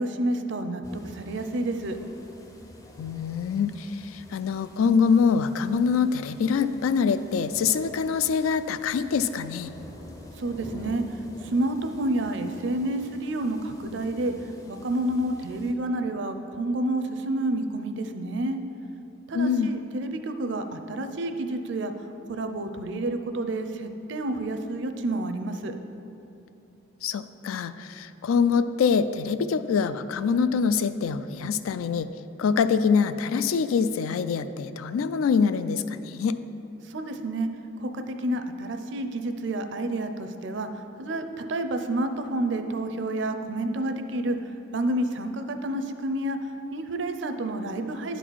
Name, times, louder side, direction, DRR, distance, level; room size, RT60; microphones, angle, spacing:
voice 1, 0.0-2.0 10.4-14.3 14.7-18.6 19.3-21.9 22.3-25.8 36.8-37.5 37.8-44.4 44.7-46.4 46.7-48.2, right 1 dB, 60° right, 8 dB, 0.5 m, -29 dB
sound 1, 0.8-15.7, left 1 dB, 15° left, 0.5 m, -47 dB
voice 2, 3.0-9.7 19.3-19.7 27.0-32.1 32.4-36.3, left 6 dB, 90° left, 12 dB, 0.3 m, -24 dB
10.5 x 4.1 x 4.6 m, 2.9 s
head